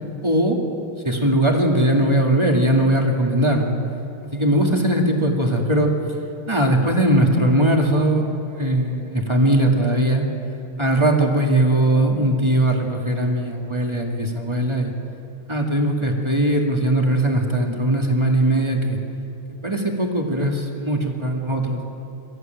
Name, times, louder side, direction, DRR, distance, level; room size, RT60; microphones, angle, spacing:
voice 1, 0.2-0.6 1.0-3.8 4.3-5.9 6.5-8.3 8.6-10.2 10.8-14.9 15.5-19.0 19.6-21.8, right 1 dB, 15° right, 1 dB, 2.0 m, -19 dB
23.0 x 14.5 x 9.2 m, 3.0 s
omnidirectional pair, 2.4 m